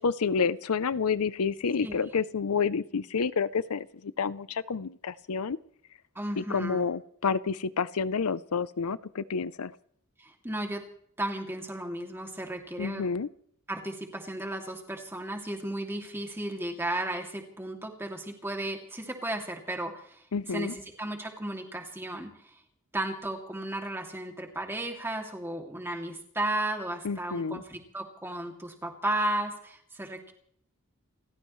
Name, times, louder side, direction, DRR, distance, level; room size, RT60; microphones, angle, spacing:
voice 1, 0.0-5.6 6.4-9.7 12.8-13.3 20.3-20.7 27.0-27.6, left 5 dB, 80° left, 17 dB, 0.6 m, -29 dB
voice 2, 6.1-6.9 10.2-10.8 11.2-13.1 13.7-22.6 22.9-30.3, right 1 dB, 10° right, 2 dB, 2.5 m, -34 dB
29.5 x 15.0 x 3.2 m, 0.66 s
head